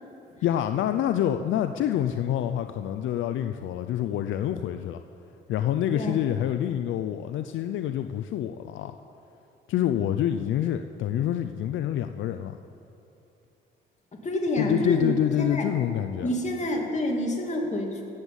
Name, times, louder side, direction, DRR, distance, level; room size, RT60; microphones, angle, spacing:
voice 1, 0.4-5.0 5.5-8.9 9.7-12.6 14.6-16.3, left 11 dB, 75° left, 8 dB, 0.5 m, -27 dB
voice 2, 14.2-15.6 16.2-18.0, left 1 dB, 35° left, 0 dB, 2.4 m, -28 dB
16.5 x 8.1 x 7.3 m, 2.8 s
cardioid pair, 90°, 20 cm